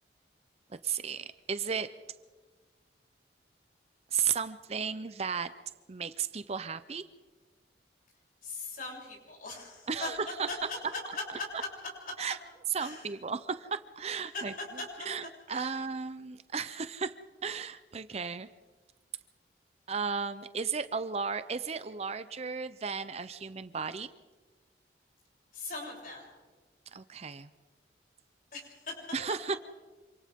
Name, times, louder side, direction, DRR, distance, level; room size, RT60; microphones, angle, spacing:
voice 1, 0.8-1.9 4.1-5.5 5.9-7.0 9.9-10.5 12.2-12.4 12.7-14.5 15.0-17.1 17.4-18.5 19.9-24.1 26.9-27.5 29.1-29.6, right 6 dB, 35° right, 12 dB, 0.6 m, -34 dB
voice 2, 8.4-10.1 10.5-11.7 12.0-12.1 12.8-13.0 14.3-14.4 15.5-15.8 25.5-26.2 28.5-28.9, left 3 dB, 50° left, -2 dB, 7.5 m, -40 dB
27.5 x 26.5 x 3.6 m, 1.3 s
head